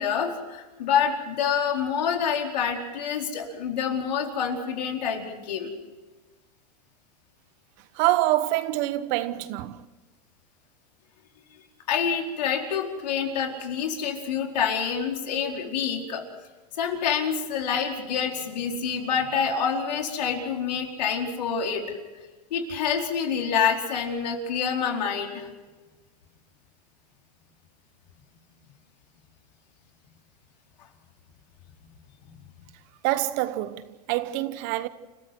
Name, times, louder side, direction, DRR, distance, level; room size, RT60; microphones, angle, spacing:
voice 1, 0.0-5.7 11.9-16.2 16.7-22.0 22.5-25.5, left 7 dB, 80° left, 4.6 m, -27 dB
voice 2, 7.9-9.8 33.0-34.9, right 15 dB, 45° right, 1.1 m, -26 dB
30.0 x 15.0 x 6.2 m
supercardioid pair, 145°, 21 cm